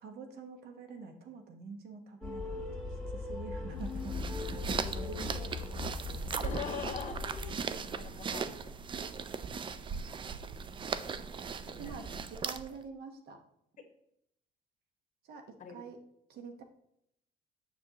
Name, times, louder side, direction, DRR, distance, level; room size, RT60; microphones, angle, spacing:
voice 1, 0.0-4.3 4.9-6.5 11.8-13.4 15.2-16.0 16.3-16.6, right 4 dB, 70° right, 6 dB, 1.2 m, -47 dB
sound 1, 2.2-7.5, left 3 dB, 5° left, 2.0 m, -39 dB
sound 2, 3.8-12.8, right 6 dB, 30° right, 0.4 m, -38 dB
voice 2, 4.7-5.4 6.3-7.2 7.8-8.6 11.7-12.2 15.6-15.8, left 5 dB, 45° left, 4 dB, 1.4 m, -42 dB
6.9 x 6.4 x 2.9 m, 0.76 s
cardioid pair, 110°, 17 cm